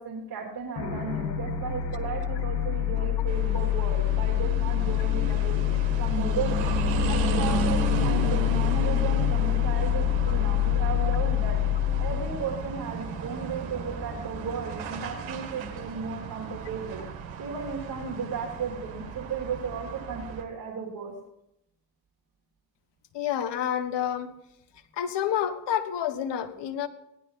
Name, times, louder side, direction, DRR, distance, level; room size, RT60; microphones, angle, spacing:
voice 1, 0.0-5.6 6.0-6.7 7.1-11.6 12.0-17.0 17.4-21.1, right 5 dB, 45° right, -1 dB, 3.2 m, -35 dB
sound 1, 0.8-13.5, left 14 dB, 80° left, 1.7 m, -26 dB
sound 2, 3.3-20.4, right 5 dB, 65° right, 2.0 m, -34 dB
voice 2, 23.1-24.3 25.0-26.9, left 9 dB, 55° left, 10 dB, 1.4 m, -28 dB
16.5 x 11.5 x 4.1 m, 0.81 s
hypercardioid pair, 45°, 49 cm